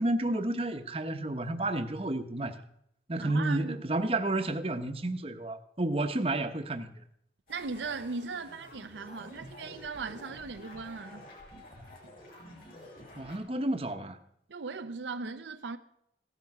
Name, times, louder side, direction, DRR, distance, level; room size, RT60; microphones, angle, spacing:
voice 1, 0.0-2.6 3.1-6.9 13.2-14.2, right 2 dB, 30° right, 0.9 m, -31 dB
voice 2, 3.2-3.8 7.5-11.3 14.5-15.8, right 4 dB, 80° right, 0.6 m, -38 dB
sound 1, 7.5-13.4, left 1 dB, 55° left, 7.0 m, -50 dB
16.5 x 12.0 x 4.8 m
head